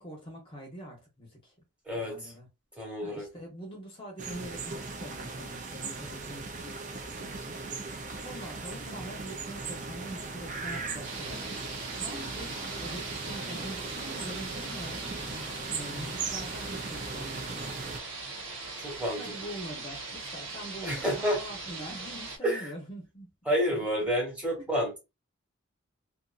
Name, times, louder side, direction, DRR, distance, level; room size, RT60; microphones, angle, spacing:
voice 1, 0.0-1.5 1.9-2.5 3.0-7.6 8.2-11.5 12.0-17.7 19.2-23.3 23.7-24.1 24.6-24.7, equal, 25° left, 0.8 m, -44 dB
voice 2, 1.9-2.3 2.8-3.3 18.8-19.2 20.8-21.4 22.4-22.7 23.4-25.0, equal, 5° right, 1.2 m, -29 dB
sound 1, 4.2-18.0, right 4 dB, 40° right, 0.4 m, -38 dB
sound 2, 11.0-22.4, right 3 dB, 75° right, 0.9 m, -40 dB
2.6 x 2.5 x 2.4 m
head